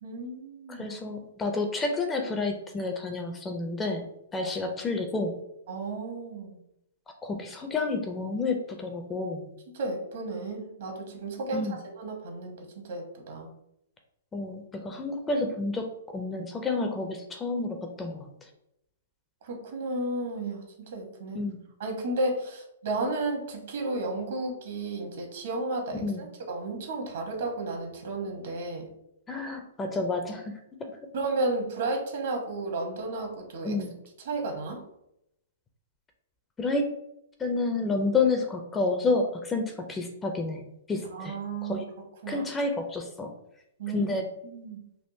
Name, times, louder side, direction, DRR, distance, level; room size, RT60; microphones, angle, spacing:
voice 1, 0.0-0.9 5.7-6.6 9.7-13.5 19.4-21.4 21.8-28.9 31.1-33.8 34.2-34.8 41.1-41.8 42.2-42.5 43.8-44.1 44.4-44.8, right 2 dB, 60° right, 2 dB, 1.0 m, -33 dB
voice 2, 0.7-5.4 7.2-9.5 11.5-11.8 14.3-18.3 21.3-21.6 26.0-26.2 29.3-30.5 30.8-30.9 33.6-33.9 36.6-36.9 37.4-41.4 41.6-41.8 42.3-43.3 43.9-44.3, left 3 dB, 15° left, 4 dB, 0.4 m, -30 dB
3.5 x 2.4 x 2.7 m, 0.81 s
hypercardioid pair, 140°, 0 cm